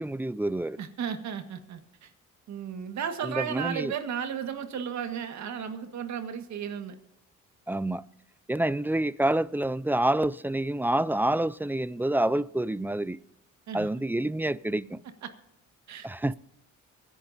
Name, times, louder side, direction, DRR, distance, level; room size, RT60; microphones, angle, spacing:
voice 1, 0.0-0.8 3.2-3.9 7.7-8.0 8.5-13.2 13.7-15.0 16.0-16.3, right 1 dB, 5° right, 0.4 m, -27 dB
voice 2, 0.8-2.1 2.5-7.0 13.7-13.9 15.2-15.3 15.9-16.1, right 8 dB, 65° right, 1.7 m, -34 dB
24.0 x 11.0 x 2.7 m
cardioid pair, 90°, 30 cm